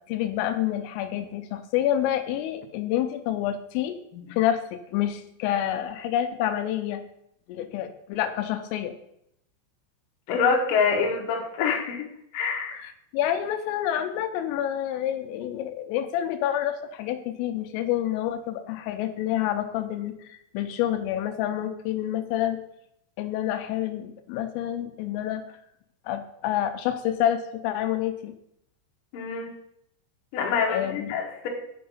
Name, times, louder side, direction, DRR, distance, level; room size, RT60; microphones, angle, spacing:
voice 1, 0.1-4.0 4.3-4.6 4.9-7.0 7.5-8.9 12.8-22.6 23.2-25.4 26.1-28.3 30.7-31.1, left 11 dB, 90° left, 8 dB, 3.3 m, -28 dB
voice 2, 10.3-12.1 12.3-12.8 29.1-29.6 30.3-31.5, left 5 dB, 65° left, 0 dB, 2.2 m, -26 dB
6.7 x 6.4 x 5.5 m, 0.76 s
omnidirectional pair, 5.7 m